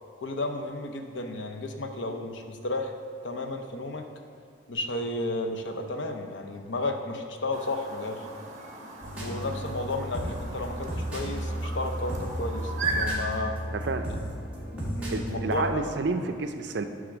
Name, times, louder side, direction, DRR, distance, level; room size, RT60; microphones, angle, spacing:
voice 1, 0.2-2.9 3.2-4.0 4.7-8.3 9.2-13.6 14.1-14.2 14.7-15.8, left 2 dB, 75° left, 5 dB, 0.7 m, -33 dB
Chirp tweet, 7.5-13.1, right 3 dB, 40° right, 1.1 m, -37 dB
sound 1, 9.0-15.7, equal, 5° right, 1.6 m, -34 dB
voice 2, 13.7-14.1 15.1-16.9, right 3 dB, 60° right, 7 dB, 0.5 m, -30 dB
9.9 x 3.6 x 6.2 m, 2.4 s
head